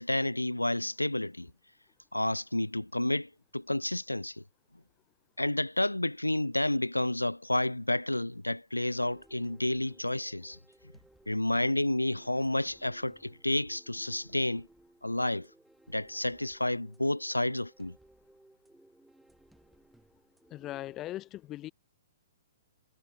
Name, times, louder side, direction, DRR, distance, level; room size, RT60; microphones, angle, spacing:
voice 1, 0.0-1.5 2.1-4.4 5.4-10.6 11.3-14.7 15.0-15.5 15.9-18.0, left 1 dB, 85° left, 0.4 m, -30 dB
sound 1, 9.0-21.0, right 1 dB, 5° right, 2.5 m, -61 dB
voice 2, 20.5-21.7, left 14 dB, 25° left, 0.8 m, -39 dB
figure-of-eight pair, 115°, 0 cm